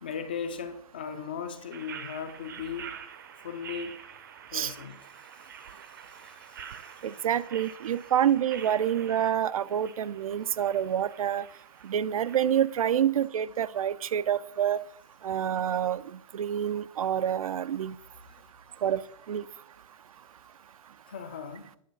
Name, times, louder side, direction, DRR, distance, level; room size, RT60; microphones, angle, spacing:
voice 1, 0.0-3.0 3.4-4.0 4.5-5.0 6.1-6.9 21.1-21.7, left 6 dB, 15° left, 0.3 m, -38 dB
sound 1, 1.7-13.0, right 8 dB, 35° right, 0.5 m, -47 dB
voice 2, 7.0-11.5 11.8-14.8 15.2-16.0 16.3-18.0 18.8-19.0 19.3-19.4, right 10 dB, 85° right, 0.4 m, -27 dB
9.4 x 3.9 x 6.4 m
hypercardioid pair, 175°, 18 cm